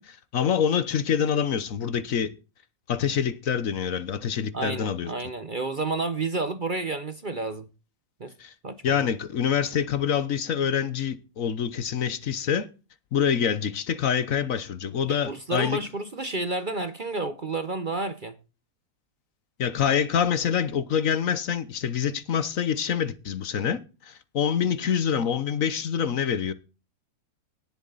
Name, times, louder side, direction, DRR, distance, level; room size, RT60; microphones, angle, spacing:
voice 1, 0.0-2.3 2.9-5.1 8.4-8.5 8.8-12.7 13.1-15.8 19.6-26.5, left 8 dB, 60° left, 1.3 m, -26 dB
voice 2, 4.5-7.7 8.2-8.3 8.6-9.1 15.1-18.4, right 3 dB, 40° right, 0.9 m, -30 dB
18.5 x 7.3 x 4.0 m
omnidirectional pair, 1.6 m